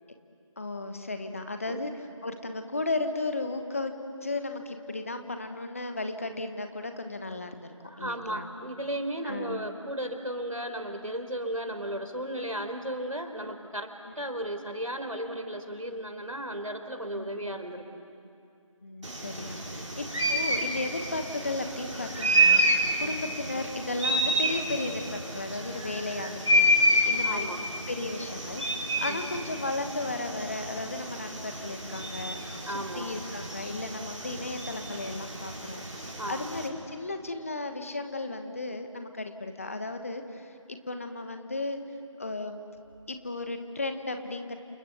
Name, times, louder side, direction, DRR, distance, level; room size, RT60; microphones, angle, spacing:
voice 1, 0.6-1.9 2.2-3.9 4.2-7.7 8.0-8.5 9.2-9.6 14.0-14.1 17.1-17.4 18.8-22.7 23.0-27.5 27.9-32.4 32.7-35.8 36.3-41.8 42.2-42.6 43.1-44.6, left 2 dB, 25° left, 7 dB, 1.2 m, -35 dB
voice 2, 7.8-18.0 23.0-23.2 27.1-27.6 29.0-29.3 32.7-33.2 36.2-36.5, right 1 dB, 90° right, 6 dB, 3.8 m, -35 dB
sound 1, 19.0-36.7, right 1 dB, 65° right, 5.6 m, -29 dB
29.0 x 27.5 x 7.1 m, 2.5 s
figure-of-eight pair, 165°, 17 cm